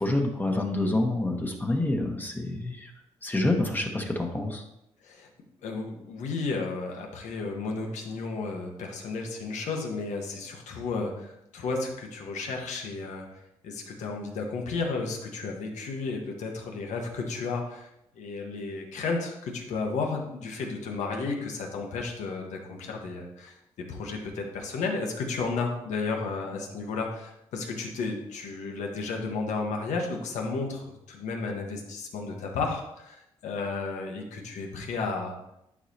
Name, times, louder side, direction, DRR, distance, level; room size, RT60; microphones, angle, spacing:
voice 1, 0.0-2.9 3.2-4.6, left 2 dB, 15° left, 2 dB, 1.2 m, -27 dB
voice 2, 5.6-17.9 18.1-35.4, left 4 dB, 85° left, 1 dB, 1.4 m, -33 dB
11.0 x 4.6 x 2.9 m, 0.83 s
cardioid pair, 80°, 12 cm